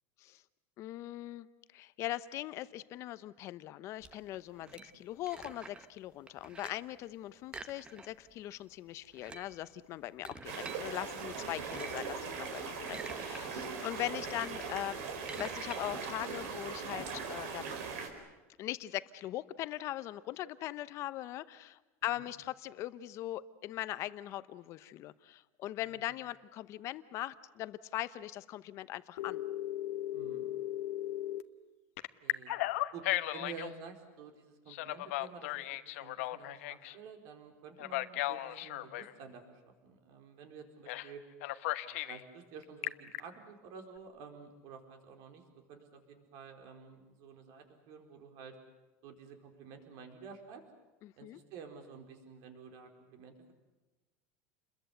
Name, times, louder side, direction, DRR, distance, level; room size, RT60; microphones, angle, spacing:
voice 1, 0.8-1.5 1.7-15.1 15.3-17.8 18.6-29.4 51.0-51.4, left 14 dB, 40° left, 15 dB, 0.9 m, -40 dB
sound 1, 4.0-6.0 6.3-6.9 7.4-8.4 8.6-8.7 9.0-10.8 11.5-12.1 12.6-13.4 13.8-17.1, right 4 dB, 15° right, 1.0 m, -49 dB
sound 2, 10.4-18.1, right 5 dB, 75° right, 4.5 m, -40 dB
Telephone, 29.2-31.4 32.0-33.7 34.7-37.0 37.8-39.1 40.9-41.1 41.4-42.2 42.6-43.2, left 16 dB, 80° left, 1.1 m, -36 dB
voice 2, 30.1-30.5 32.2-32.5 32.9-35.6 36.0-41.2 41.8-45.4 45.7-48.6 49.0-50.6 51.2-53.5, right 5 dB, 55° right, 5 dB, 4.6 m, -51 dB
30.0 x 22.0 x 8.1 m, 1.1 s
supercardioid pair, 150°, 7 cm